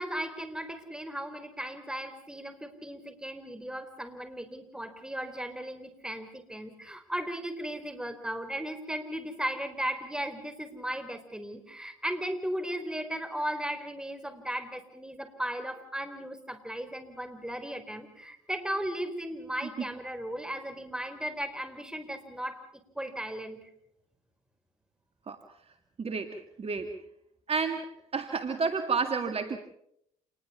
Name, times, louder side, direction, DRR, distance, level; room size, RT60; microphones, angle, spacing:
voice 1, 0.0-22.6 22.9-23.6, right 1 dB, 5° right, 8 dB, 4.5 m, -36 dB
voice 2, 26.0-26.9 27.5-29.6, right 5 dB, 35° right, 7 dB, 2.1 m, -31 dB
28.0 x 21.0 x 5.8 m, 0.73 s
hypercardioid pair, 65°, 17 cm